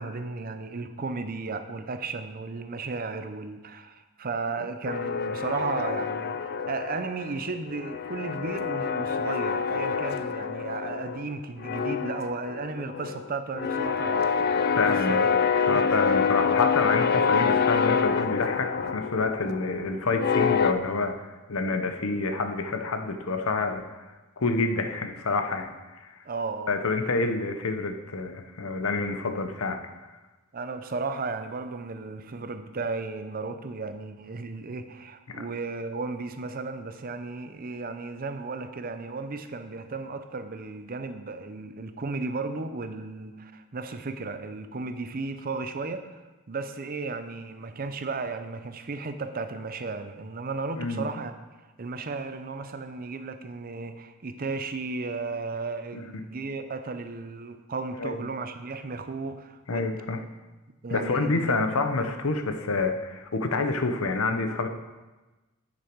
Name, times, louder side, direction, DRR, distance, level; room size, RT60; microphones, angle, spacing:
voice 1, 0.0-15.3 15.6-15.8 26.2-26.8 30.5-46.2 46.5-51.3 51.8-59.9 60.8-61.6, right 3 dB, 45° right, 9 dB, 0.6 m, -34 dB
sound 1, 4.9-7.4 7.7-11.3 11.6-20.7, left 6 dB, 50° left, 0.4 m, -26 dB
voice 2, 14.7-15.2 15.7-23.8 24.4-26.1 26.7-29.8 35.3-35.4 50.8-51.0 56.1-56.2 58.0-58.2 59.7-60.2 60.9-64.7, left 3 dB, 80° left, 7 dB, 0.8 m, -28 dB
10.0 x 6.4 x 4.6 m, 1.1 s
head